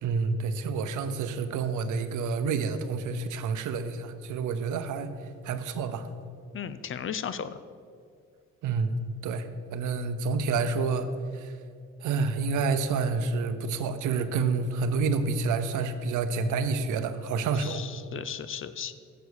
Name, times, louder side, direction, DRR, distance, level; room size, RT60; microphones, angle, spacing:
voice 1, 0.0-6.1 8.6-8.9 9.2-11.5 12.0-17.8, right 4 dB, 80° right, 10 dB, 0.7 m, -29 dB
voice 2, 6.5-7.6 17.6-18.9, left 8 dB, 45° left, 13 dB, 0.5 m, -35 dB
7.1 x 6.9 x 6.3 m, 2.2 s
cardioid pair, 90°, 30 cm